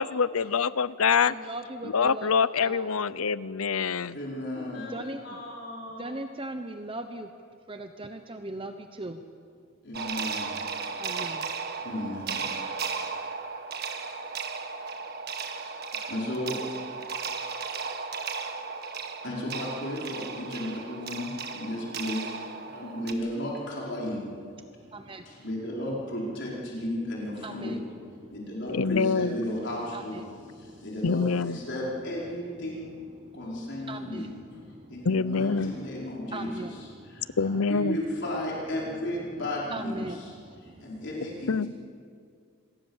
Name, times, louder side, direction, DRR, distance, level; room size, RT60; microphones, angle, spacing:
voice 1, 0.0-1.3 1.8-4.2 28.7-29.3 31.0-31.6 35.0-35.7 37.4-38.0 41.5-41.7, left 5 dB, 80° left, 17 dB, 0.7 m, -25 dB
voice 2, 1.2-2.3 2.6-2.9 4.9-5.2 6.0-7.3 7.7-9.2 11.0-11.5 24.9-25.2 27.4-27.8 29.9-30.0 33.9-34.3 36.3-36.7 39.7-40.2 40.5-40.6, right 2 dB, 25° right, 7 dB, 0.9 m, -38 dB
voice 3, 4.1-6.2 9.8-10.6 11.8-12.5 16.1-16.6 19.2-24.3 25.2-27.9 28.3-33.0 33.3-34.6 34.9-41.7, left 1 dB, 55° left, -4 dB, 4.9 m, -34 dB
sound 1, 9.9-23.1, right 5 dB, 45° right, 1.7 m, -35 dB
27.0 x 21.5 x 7.4 m, 2.2 s
head